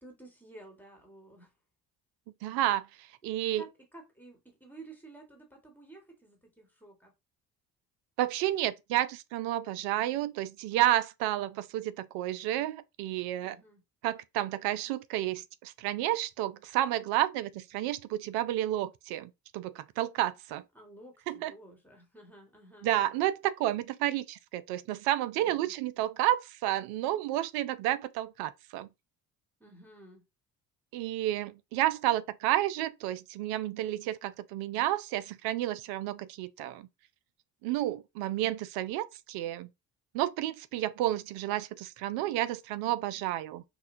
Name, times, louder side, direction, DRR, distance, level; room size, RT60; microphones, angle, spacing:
voice 1, 0.0-1.5 3.6-7.1 13.4-13.8 20.7-22.9 25.4-25.7 29.6-30.2, right 2 dB, 5° left, 1.4 m, -52 dB
voice 2, 2.4-2.9 3.2-3.6 8.2-13.6 14.0-20.6 21.3-21.5 22.8-28.9 30.9-36.9 37.6-39.7 40.1-43.6, right 14 dB, 50° right, 0.5 m, -31 dB
5.5 x 2.2 x 2.6 m
figure-of-eight pair, 45°, 50 cm